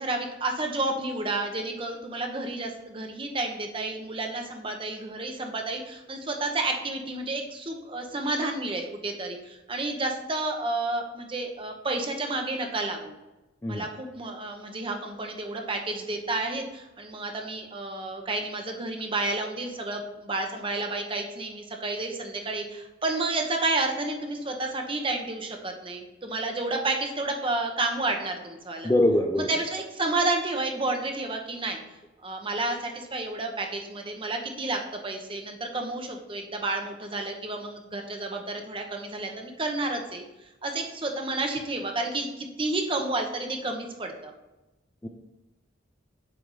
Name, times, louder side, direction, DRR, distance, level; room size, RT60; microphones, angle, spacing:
voice 1, 0.0-13.1 13.7-28.9 29.3-31.8 32.2-40.2 40.6-44.3, right 2 dB, 25° right, 3 dB, 0.8 m, -31 dB
voice 2, 28.8-29.5 45.0-45.1, left 1 dB, 15° left, 3 dB, 0.4 m, -23 dB
7.7 x 3.4 x 4.8 m, 1.0 s
head